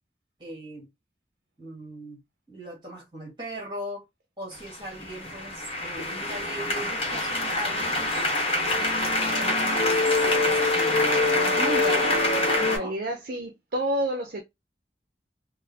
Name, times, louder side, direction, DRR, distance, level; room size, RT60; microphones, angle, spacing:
voice 1, 0.4-0.9 1.6-2.2 2.5-4.0 4.4-8.3 8.7-12.1 12.6-13.0, right 1 dB, 25° right, 1.7 m, -38 dB
sound 1, 4.7-12.8, left 2 dB, 35° left, 1.0 m, -24 dB
voice 2, 12.6-14.4, right 1 dB, 55° right, 0.6 m, -29 dB
3.8 x 2.0 x 2.8 m
head